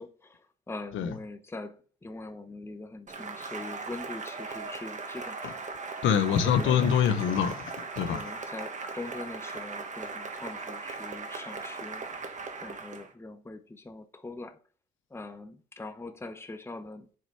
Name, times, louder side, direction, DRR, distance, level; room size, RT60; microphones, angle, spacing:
voice 1, 0.0-6.9 8.1-14.6 15.1-17.2, left 2 dB, 10° left, 0.8 m, -43 dB
Cheering / Applause, 3.1-13.1, right 4 dB, 40° right, 1.6 m, -39 dB
voice 2, 6.0-8.2, left 8 dB, 85° left, 1.0 m, -25 dB
7.4 x 4.8 x 4.7 m
cardioid pair, 90°, 20 cm